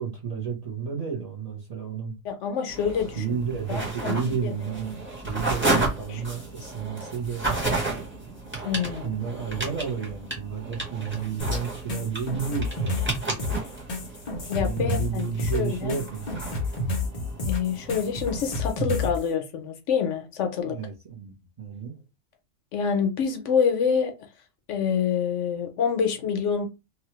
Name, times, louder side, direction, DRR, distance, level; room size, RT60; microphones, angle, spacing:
voice 1, 0.0-2.2 2.9-7.5 9.0-13.0 14.4-16.5 20.6-22.0, right 6 dB, 40° right, 0.7 m, -32 dB
voice 2, 2.2-3.4 3.7-4.6 6.1-6.2 8.6-9.1 14.5-15.9 17.4-20.8 22.7-24.1 24.7-26.7, left 7 dB, 75° left, 0.9 m, -27 dB
sound 1, 2.7-18.7, right 2 dB, 10° right, 0.9 m, -33 dB
sound 2, 11.4-19.2, left 2 dB, 40° left, 0.6 m, -30 dB
2.9 x 2.3 x 2.9 m
omnidirectional pair, 1.3 m